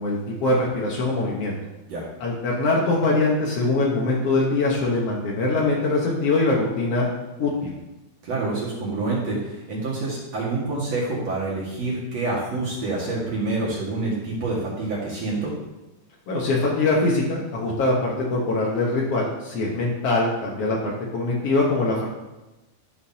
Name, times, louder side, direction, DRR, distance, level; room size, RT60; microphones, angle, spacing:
voice 1, 0.0-1.5 2.2-7.1 7.4-7.7 16.3-22.1, left 2 dB, 80° left, -3 dB, 1.3 m, -23 dB
voice 2, 8.2-15.5, right 3 dB, 50° right, -6 dB, 2.5 m, -27 dB
13.0 x 6.3 x 2.8 m, 1.0 s
omnidirectional pair, 4.6 m